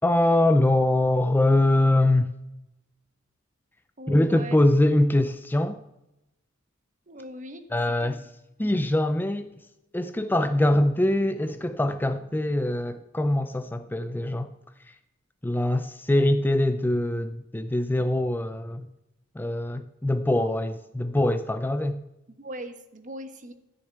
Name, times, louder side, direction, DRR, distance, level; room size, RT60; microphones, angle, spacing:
voice 1, 0.0-2.3 4.1-5.8 7.7-8.3 8.6-9.5 9.9-14.5 14.8-15.0 15.4-18.9 19.3-22.0, left 1 dB, 10° left, 0.4 m, -23 dB
voice 2, 4.0-4.6 7.1-7.6 8.0-8.1 8.6-8.7 20.4-20.5 22.4-23.5, right 1 dB, 40° right, 1.2 m, -39 dB
13.5 x 6.5 x 8.9 m
head